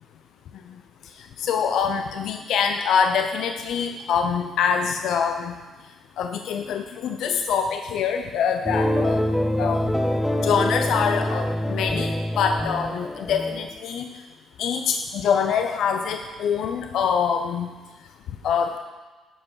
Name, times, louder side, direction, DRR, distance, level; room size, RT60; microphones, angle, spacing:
voice 1, 1.4-5.5 6.2-9.2 9.6-9.8 10.4-14.1 14.6-17.7 18.4-18.8, left 6 dB, 75° left, 5 dB, 0.6 m, -24 dB
sound 1, 8.6-13.7, left 1 dB, 5° left, 0.9 m, -25 dB
12.5 x 5.2 x 4.8 m, 1.3 s
supercardioid pair, 65°, 0 cm